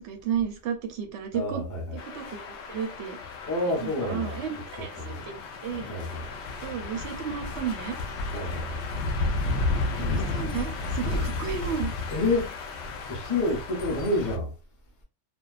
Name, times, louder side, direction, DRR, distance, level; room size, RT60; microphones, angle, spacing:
voice 1, 0.0-1.6 1.9-3.2 3.8-5.3 5.6-5.9 6.6-8.0 10.0-11.9, right 7 dB, 65° right, 0.7 m, -33 dB
voice 2, 1.3-2.0 3.5-4.4 4.7-5.2 5.9-6.3 8.3-8.9 11.0-11.3 12.1-12.5 13.1-14.5, left 2 dB, 15° left, 0.6 m, -29 dB
sound 1, 2.0-14.4, left 3 dB, 70° left, 0.6 m, -32 dB
2.6 x 2.1 x 2.4 m
omnidirectional pair, 1.7 m